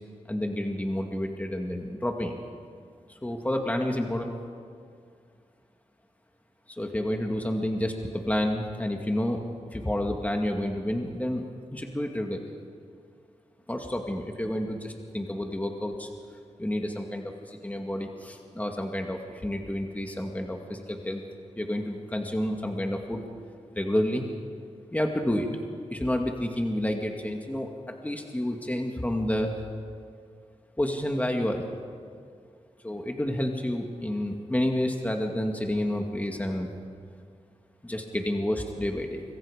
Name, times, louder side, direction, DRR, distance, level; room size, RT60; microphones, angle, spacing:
voice 1, 0.3-2.3 3.2-4.3 6.8-9.4 9.7-11.4 11.7-12.4 13.7-16.1 16.6-21.2 21.6-23.2 23.7-24.3 24.9-25.5 25.9-29.6 30.8-31.7 32.8-36.7 37.8-39.2, left 1 dB, 15° left, 2 dB, 2.1 m, -29 dB
25.5 x 23.0 x 5.1 m, 2.2 s
wide cardioid pair, 75°, 12 cm